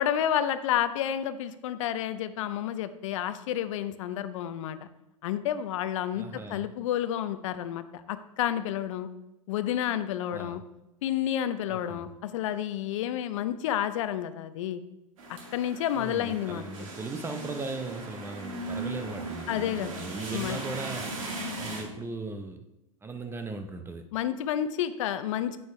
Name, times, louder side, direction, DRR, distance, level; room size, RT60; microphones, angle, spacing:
voice 1, 0.0-4.8 5.2-9.1 9.5-10.6 11.0-14.8 15.5-16.9 19.5-20.6 24.1-25.6, left 10 dB, 60° left, 12 dB, 0.6 m, -30 dB
voice 2, 6.1-6.7 10.3-10.6 11.7-12.1 16.0-21.1 21.6-22.7 23.0-24.0, right 3 dB, 15° right, 7 dB, 0.7 m, -38 dB
sound 1, 15.2-21.8, right 2 dB, 70° right, 2.2 m, -38 dB
8.7 x 8.0 x 3.2 m, 0.90 s
hypercardioid pair, 110°, 18 cm